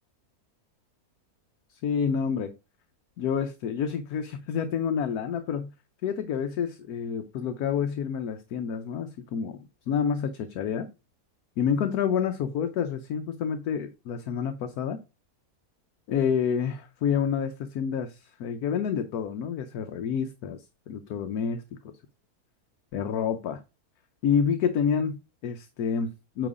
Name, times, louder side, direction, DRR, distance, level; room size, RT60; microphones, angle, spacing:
voice 1, 1.7-2.5 3.2-5.7 6.0-9.6 9.9-10.9 11.6-15.0 16.1-21.6 22.9-23.6 24.2-26.5, left 7 dB, 75° left, 7 dB, 1.2 m, -28 dB
9.1 x 3.1 x 4.9 m, 0.29 s
omnidirectional pair, 1.6 m